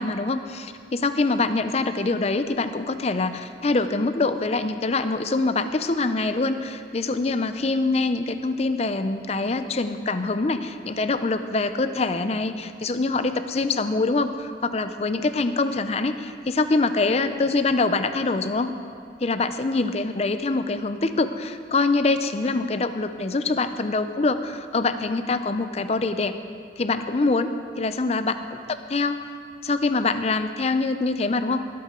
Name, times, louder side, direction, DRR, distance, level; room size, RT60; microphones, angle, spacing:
voice 1, 0.0-18.7 19.2-26.3 26.8-27.5 27.8-29.3 29.6-31.6, left 3 dB, 35° left, 10 dB, 0.5 m, -24 dB
22.5 x 8.5 x 3.8 m, 2.2 s
head